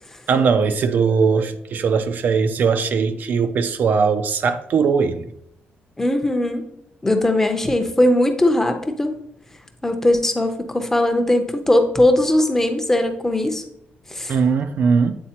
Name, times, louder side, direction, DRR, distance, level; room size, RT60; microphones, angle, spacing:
voice 1, 0.3-5.2 14.3-15.2, right 5 dB, 50° right, 0.4 m, -19 dB
voice 2, 6.0-6.6 7.0-9.1 9.8-13.6 14.1-14.4, left 1 dB, 10° left, 0.6 m, -19 dB
8.4 x 4.1 x 2.9 m
wide cardioid pair, 165°, 4 cm